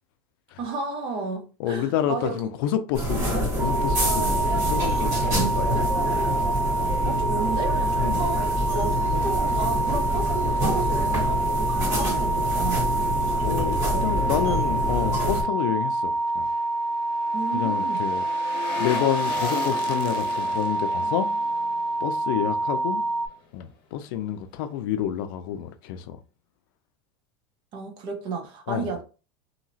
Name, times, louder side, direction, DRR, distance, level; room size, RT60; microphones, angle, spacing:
voice 1, 0.6-2.3 7.0-12.9 17.3-18.0 27.7-29.0, right 4 dB, 45° right, 0.9 m, -33 dB
voice 2, 1.6-6.2 8.0-8.2 13.4-16.5 17.5-18.2 18.8-21.3 22.0-23.0 23.5-26.2 28.7-28.9, left 10 dB, 65° left, 0.4 m, -29 dB
sound 1, 2.9-15.4, equal, 25° right, 1.7 m, -26 dB
sound 2, 3.6-23.3, right 2 dB, 5° right, 0.8 m, -27 dB
sound 3, 16.0-23.2 23.5-23.6, left 5 dB, 40° left, 0.9 m, -37 dB
2.8 x 2.8 x 2.7 m
supercardioid pair, 140°, 12 cm